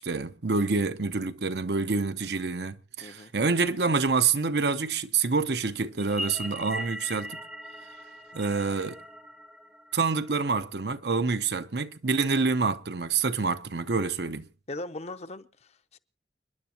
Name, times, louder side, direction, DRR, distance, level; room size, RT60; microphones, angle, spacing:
voice 1, 0.0-7.4 8.3-9.0 9.9-14.5, right 4 dB, 65° right, 0.8 m, -27 dB
voice 2, 3.0-3.3 14.7-16.0, left 2 dB, 40° left, 0.7 m, -39 dB
sound 1, 6.0-10.5, equal, 5° right, 0.8 m, -40 dB
29.5 x 10.5 x 2.9 m
head